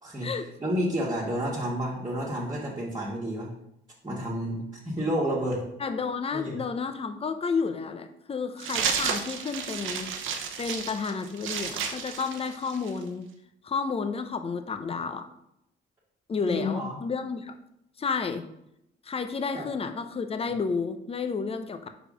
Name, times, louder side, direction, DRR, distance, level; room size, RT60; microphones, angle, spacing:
voice 1, 0.6-3.5 4.0-5.6 6.3-6.6 16.5-17.0 19.5-19.7, equal, 20° right, -6 dB, 1.8 m, -30 dB
voice 2, 5.8-10.1 10.6-13.3 13.6-15.3 16.3-17.6 18.0-18.5 19.1-21.9, left 5 dB, 30° left, 8 dB, 0.7 m, -31 dB
sound 1, 8.6-13.0, right 6 dB, 85° right, 0.9 m, -32 dB
5.0 x 4.8 x 5.0 m, 0.80 s
cardioid pair, 90°, 20 cm